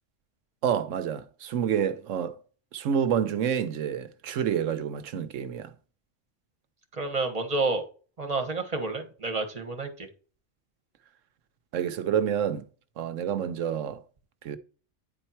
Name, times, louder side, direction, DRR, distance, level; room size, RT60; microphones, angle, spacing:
voice 1, 0.6-2.4 2.7-5.7 11.7-12.6 13.0-14.0 14.4-14.6, right 8 dB, 85° right, 1.1 m, -28 dB
voice 2, 7.0-7.8 8.2-9.9, right 3 dB, 30° right, 1.4 m, -29 dB
9.6 x 4.4 x 4.4 m
omnidirectional pair, 1.3 m